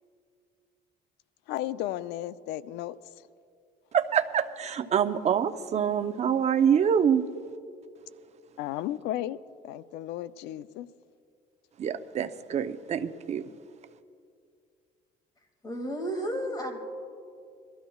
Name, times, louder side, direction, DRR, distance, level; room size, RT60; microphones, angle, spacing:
voice 1, 1.5-3.0 8.6-9.4 9.6-10.9, left 13 dB, 90° left, 0.4 m, -34 dB
voice 2, 3.9-7.3 11.8-13.4, right 8 dB, 40° right, 0.6 m, -25 dB
voice 3, 15.6-16.8, equal, 25° left, 2.1 m, -32 dB
23.5 x 13.5 x 2.3 m
cardioid pair, 110°, 17 cm